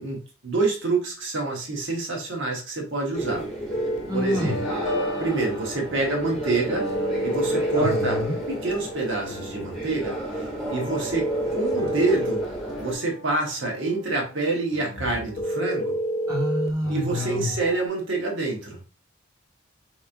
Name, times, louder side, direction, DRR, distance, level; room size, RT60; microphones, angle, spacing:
voice 1, 0.0-3.5 4.1-4.6 5.2-6.9 7.2-8.2 8.5-10.2 10.7-12.4 12.8-16.0 16.9-18.8, right 3 dB, 65° right, 1 dB, 1.1 m, -27 dB
sound 1, 3.1-12.9, right 1 dB, ahead, 1.2 m, -33 dB
sound 2, 3.5-16.3 16.8-17.9, equal, 80° left, 0.8 m, -37 dB
sound 3, 3.7-4.1 6.9-8.3 11.1-12.5 15.4-16.8, equal, 35° left, 0.3 m, -27 dB
voice 2, 4.1-4.6 7.7-8.3 16.3-17.5, left 1 dB, 20° right, -3 dB, 1.4 m, -27 dB
4.0 x 3.1 x 2.5 m, 0.33 s
head